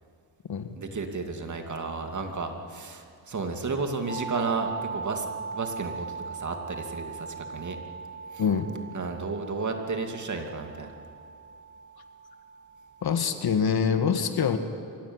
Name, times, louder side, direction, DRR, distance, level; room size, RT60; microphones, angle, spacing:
voice 1, 0.8-5.3 5.5-7.8 8.3-8.4 8.9-10.9, right 4 dB, 40° right, 4 dB, 2.8 m, -32 dB
sound 1, 4.1-13.8, right 5 dB, 35° left, 7.1 m, -40 dB
voice 2, 8.4-8.7 13.0-14.6, left 6 dB, 55° left, 8 dB, 1.8 m, -25 dB
24.0 x 16.5 x 9.7 m, 2.3 s
cardioid pair, 100°, 45 cm